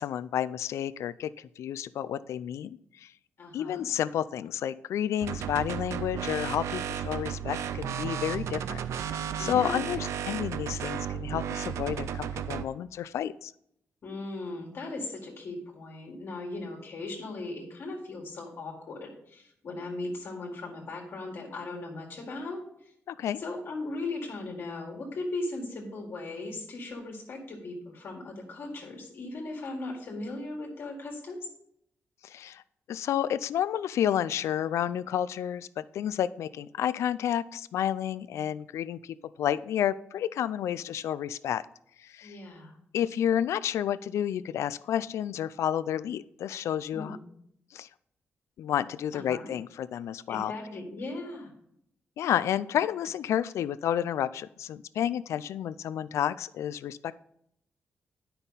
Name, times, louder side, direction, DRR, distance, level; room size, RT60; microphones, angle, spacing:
voice 1, 0.0-3.1 3.5-8.8 9.1-13.5 23.1-23.4 32.2-32.6 32.9-41.6 42.0-42.4 42.9-47.2 47.7-47.9 48.6-50.5 52.2-57.1, left 10 dB, 85° left, 16 dB, 0.3 m, -30 dB
voice 2, 3.4-3.8 9.4-9.8 14.0-22.9 23.4-31.4 42.2-42.8 46.9-47.2 49.1-49.5 50.3-51.5, left 2 dB, 55° left, 0 dB, 1.7 m, -38 dB
sound 1, 5.2-12.7, right 8 dB, 85° right, 0.4 m, -34 dB
10.0 x 5.6 x 4.0 m, 0.74 s
wide cardioid pair, 155°, 5 cm